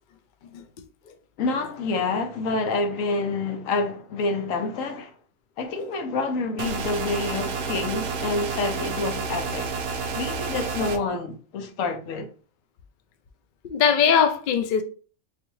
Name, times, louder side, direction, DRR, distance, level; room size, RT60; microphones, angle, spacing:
voice 1, 1.4-5.1 5.6-9.7 10.1-12.3, left 3 dB, 80° left, 1.1 m, -28 dB
sound 1, 6.6-11.0, right 4 dB, 65° right, 0.7 m, -30 dB
voice 2, 13.6-14.8, left 7 dB, 60° left, 0.5 m, -21 dB
4.1 x 2.4 x 3.0 m
omnidirectional pair, 1.4 m